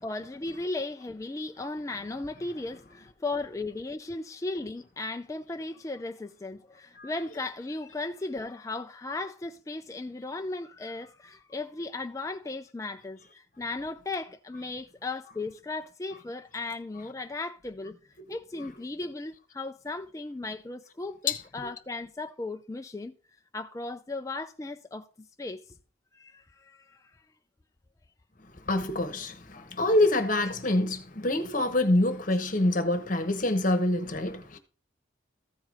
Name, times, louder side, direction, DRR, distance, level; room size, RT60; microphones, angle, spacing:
voice 1, 0.0-18.0 18.3-23.1 23.5-25.7 26.1-27.2, left 2 dB, 15° left, 0.4 m, -36 dB
voice 2, 18.2-18.7 21.3-21.7 28.7-34.6, left 1 dB, 40° left, 1.1 m, -26 dB
14.5 x 4.9 x 3.8 m
head